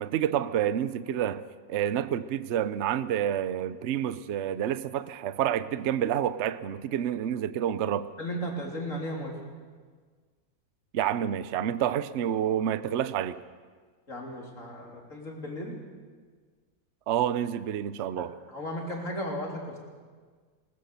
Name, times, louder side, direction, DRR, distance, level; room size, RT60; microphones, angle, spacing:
voice 1, 0.0-1.4 1.7-8.1 10.9-13.4 17.1-18.3, right 10 dB, 55° right, 14 dB, 0.8 m, -28 dB
voice 2, 8.2-9.3 14.1-15.7 18.2-19.8, equal, 45° left, -1 dB, 3.8 m, -35 dB
20.5 x 19.5 x 6.9 m, 1.5 s
omnidirectional pair, 1.9 m